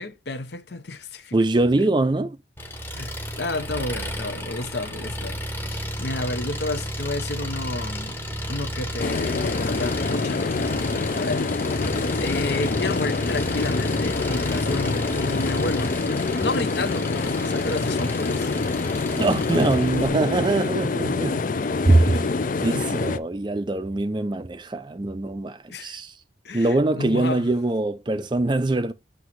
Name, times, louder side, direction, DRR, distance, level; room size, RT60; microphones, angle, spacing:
voice 1, 0.0-1.4 2.9-5.4 5.7-8.2 8.5-10.7 11.1-11.8 12.2-16.0 16.4-18.5 22.1-22.2 25.7-26.0 26.4-27.5, left 2 dB, 60° left, 0.8 m, -31 dB
voice 2, 1.3-2.4 19.2-21.4 21.9-22.2 22.6-26.1 26.5-28.9, right 2 dB, 25° right, 0.4 m, -22 dB
Engine, 2.6-20.1, equal, 10° left, 1.0 m, -32 dB
sound 1, 9.0-23.2, left 4 dB, 45° left, 0.4 m, -26 dB
7.9 x 3.0 x 5.8 m
head